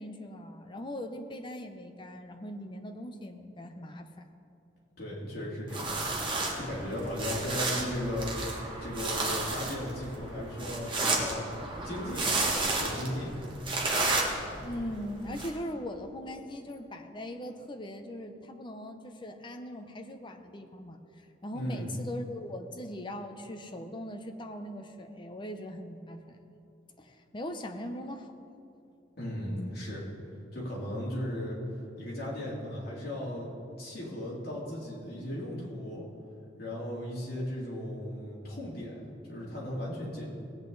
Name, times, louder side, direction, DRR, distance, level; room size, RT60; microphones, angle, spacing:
voice 1, 0.0-4.3 14.6-21.0 21.4-26.5 27.0-28.3, left 1 dB, 25° left, 6 dB, 0.8 m, -40 dB
voice 2, 5.0-11.5 11.8-13.5 21.5-21.8 29.2-30.0 30.5-31.6 32.0-33.5 33.8-36.0 36.6-40.3, left 1 dB, 55° left, -5 dB, 3.1 m, -36 dB
sound 1, 5.7-15.5, right 2 dB, 25° right, 1.6 m, -32 dB
18.0 x 8.6 x 4.0 m, 2.7 s
head